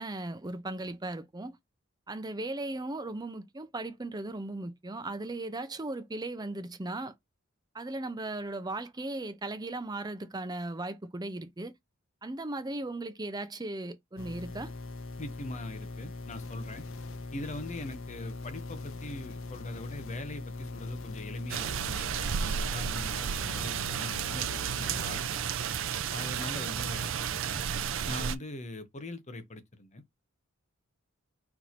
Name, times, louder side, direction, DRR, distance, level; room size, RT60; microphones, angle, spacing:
voice 1, 0.0-1.6 2.1-7.1 7.7-11.7 12.2-14.7, right 2 dB, 20° right, 0.6 m, -37 dB
sound 1, 14.2-25.2, left 2 dB, 70° left, 0.6 m, -41 dB
voice 2, 15.2-16.8 17.3-25.4 26.1-27.6 28.1-30.0, left 2 dB, 35° left, 0.8 m, -42 dB
sound 2, 21.5-28.4, right 7 dB, 70° right, 0.5 m, -32 dB
4.6 x 2.7 x 4.1 m
head